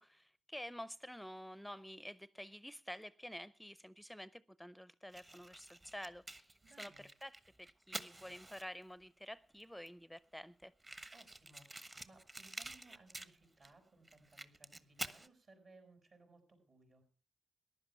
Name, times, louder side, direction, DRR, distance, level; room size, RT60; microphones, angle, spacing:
voice 1, 0.0-10.7, equal, 5° left, 0.6 m, -50 dB
Fire, 5.1-8.9 9.6-9.7 9.9-10.0 10.2-10.3 10.8-13.7 14.0-15.3, right 2 dB, 30° right, 1.2 m, -49 dB
voice 2, 6.6-7.1 11.1-17.0, right 2 dB, 55° right, 6.0 m, -64 dB
15.0 x 11.0 x 5.7 m
supercardioid pair, 45°, 0 cm